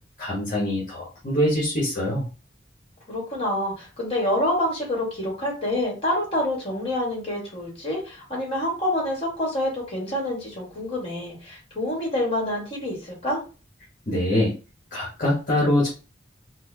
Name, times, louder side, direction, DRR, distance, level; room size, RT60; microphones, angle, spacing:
voice 1, 0.2-2.2 14.1-14.5 14.9-15.9, left 1 dB, 45° left, -6 dB, 1.1 m, -23 dB
voice 2, 3.1-13.4, left 1 dB, 30° left, -2 dB, 1.6 m, -27 dB
4.2 x 2.1 x 2.7 m, 0.33 s
head